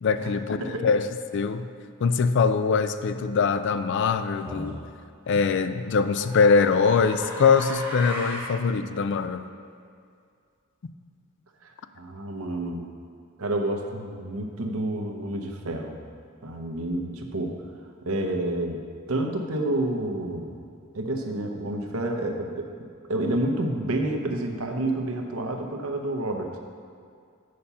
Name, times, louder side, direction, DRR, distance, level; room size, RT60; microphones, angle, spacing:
voice 1, 0.0-1.1 1.3-1.7 2.0-4.8 5.3-9.4, left 5 dB, 55° left, 11 dB, 0.4 m, -23 dB
voice 2, 0.6-0.9 11.6-12.8 13.4-16.0 16.4-17.6 18.0-18.8 19.1-20.6 20.9-22.7 23.1-26.6, right 1 dB, 85° right, 3 dB, 0.9 m, -29 dB
sound 1, 4.4-4.8 5.8-8.6, equal, 10° right, 1.3 m, -36 dB
6.9 x 6.6 x 5.5 m, 2.3 s
head